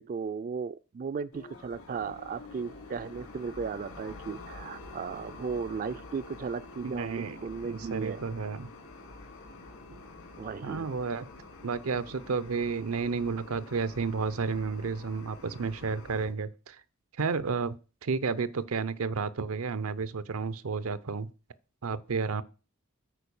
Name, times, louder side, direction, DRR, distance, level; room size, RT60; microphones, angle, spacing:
voice 1, 0.0-8.2 9.9-10.0 10.4-10.9, right 5 dB, 40° right, 0.3 m, -36 dB
sound 1, 1.3-16.3, left 2 dB, 75° left, 3.0 m, -47 dB
voice 2, 6.8-8.7 10.6-11.3 11.6-16.8 17.2-17.8 18.0-21.3 21.8-22.4, right 5 dB, 85° right, 0.6 m, -32 dB
9.1 x 4.4 x 7.0 m
head